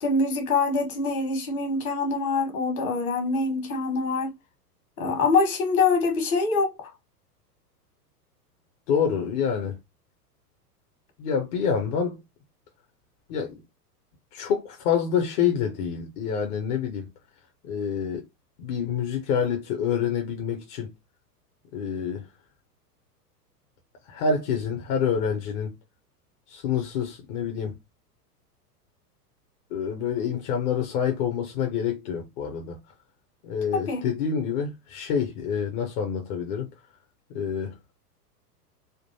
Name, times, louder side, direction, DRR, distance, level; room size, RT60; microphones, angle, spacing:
voice 1, 0.0-4.3 5.0-6.9 33.7-34.1, left 3 dB, 60° left, 1.6 m, -24 dB
voice 2, 8.9-9.8 11.2-12.2 13.3-13.6 14.3-17.1 17.7-18.2 18.6-20.9 21.7-22.2 24.1-25.7 26.5-27.7 29.7-32.8 33.4-36.7 37.3-37.7, left 7 dB, 35° left, 0.8 m, -27 dB
3.7 x 2.5 x 2.7 m
figure-of-eight pair, 100°, 48 cm